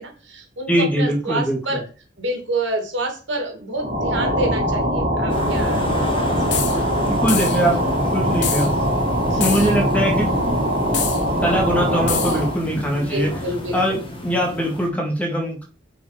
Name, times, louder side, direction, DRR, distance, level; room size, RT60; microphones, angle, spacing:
voice 1, 0.0-1.8 2.2-6.3 6.6-6.8 9.2-9.6 13.0-14.0, right 1 dB, 80° right, 3 dB, 2.3 m, -28 dB
voice 2, 0.7-1.8 7.0-8.7 9.4-10.3 11.4-13.3 13.7-15.6, equal, 10° left, 0 dB, 1.9 m, -22 dB
sound 1, 3.8-12.6, equal, 35° right, 2.4 m, -22 dB
sound 2, 5.3-14.9, left 1 dB, 30° left, 1.5 m, -31 dB
sound 3, 6.5-6.8 7.3-7.7 8.4-8.7 9.4-9.8 10.9-11.2 12.1-12.4, left 9 dB, 70° left, 1.0 m, -26 dB
6.5 x 4.8 x 5.0 m, 0.37 s
head